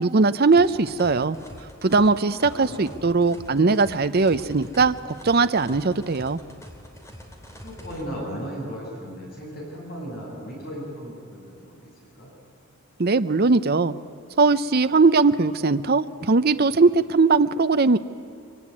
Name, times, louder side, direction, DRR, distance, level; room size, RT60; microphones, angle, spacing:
voice 1, 0.0-1.4 1.8-6.4 13.0-13.9 14.4-18.0, right 3 dB, 45° right, 11 dB, 0.6 m, -20 dB
sound 1, 0.5-8.0, equal, 15° left, 2.9 m, -44 dB
voice 2, 2.5-2.9 7.5-12.3, equal, 45° left, -3 dB, 7.8 m, -36 dB
24.0 x 23.5 x 9.7 m, 2.4 s
head